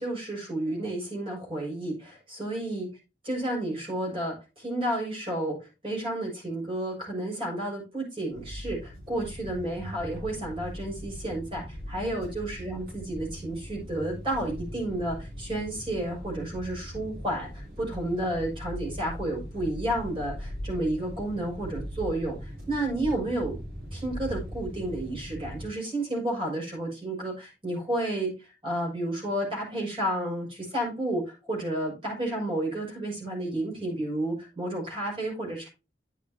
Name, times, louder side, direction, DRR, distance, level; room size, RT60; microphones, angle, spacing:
voice 1, 0.0-2.9 3.2-5.6 5.8-23.6 23.9-35.7, right 1 dB, 30° right, -2 dB, 6.4 m, -31 dB
sound 1, 8.3-25.7, equal, 55° right, 3.5 m, -40 dB
10.5 x 9.0 x 2.9 m, 0.28 s
head